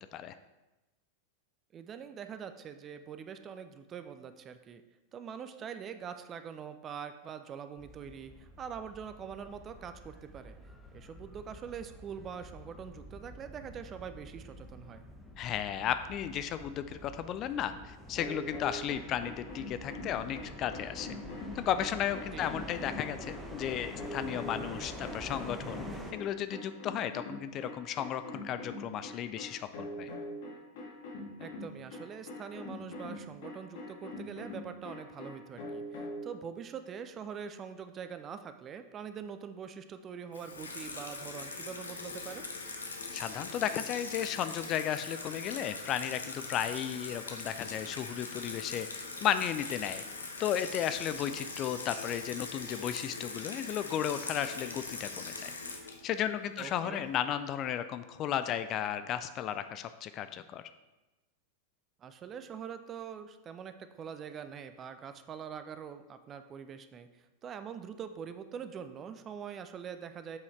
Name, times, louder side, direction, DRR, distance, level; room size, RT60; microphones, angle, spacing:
voice 1, 1.7-4.8 5.1-10.6 10.9-15.0 22.3-22.6 31.4-42.5 56.6-57.0 62.0-70.4, right 7 dB, 25° right, 10 dB, 0.6 m, -44 dB
sound 1, 7.8-26.1, equal, 5° right, 1.1 m, -47 dB
voice 2, 15.4-21.2 21.6-25.8 26.1-30.1 43.1-50.0 50.4-55.5 56.0-60.6, left 10 dB, 35° left, 11 dB, 0.4 m, -34 dB
sound 2, 18.2-36.3, left 1 dB, 50° left, 1.8 m, -43 dB
Water tap faucet / Sink (filling or washing), 40.3-57.0, left 3 dB, 75° left, 0.9 m, -41 dB
7.8 x 5.6 x 4.5 m, 1.1 s
figure-of-eight pair, 90°, 0 cm